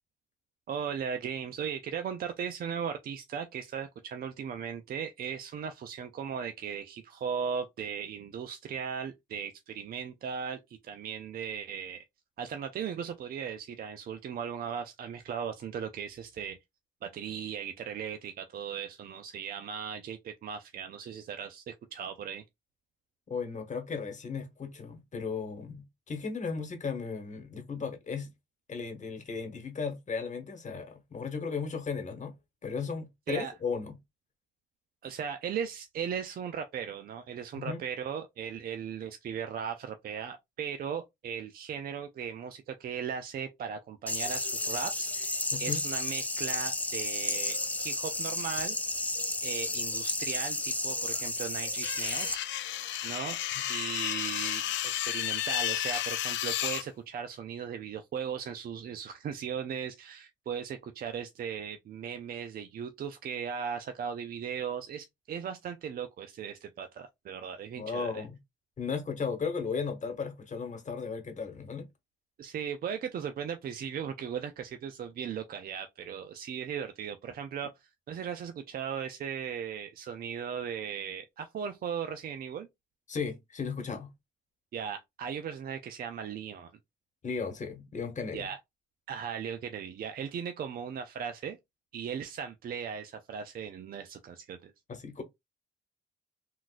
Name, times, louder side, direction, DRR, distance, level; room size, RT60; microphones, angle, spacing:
voice 1, 0.7-12.0 12.4-16.6 17.0-22.4 33.3-33.5 35.0-49.1 49.4-52.5 53.0-53.4 53.7-68.2 72.4-82.7 84.7-86.7 88.3-88.6 89.1-91.6 91.9-94.7, right 7 dB, 50° right, 0.4 m, -37 dB
voice 2, 23.3-28.3 28.7-32.3 32.6-34.0 37.5-37.8 45.5-45.8 67.7-68.4 68.8-71.9 83.1-84.1 87.2-88.5 94.9-95.2, left 5 dB, 40° left, 1.1 m, -35 dB
sound 1, 44.1-52.3, left 2 dB, 5° left, 0.5 m, -32 dB
sound 2, 51.8-56.8, left 12 dB, 70° left, 0.5 m, -32 dB
3.8 x 2.3 x 2.4 m
cardioid pair, 90°, 20 cm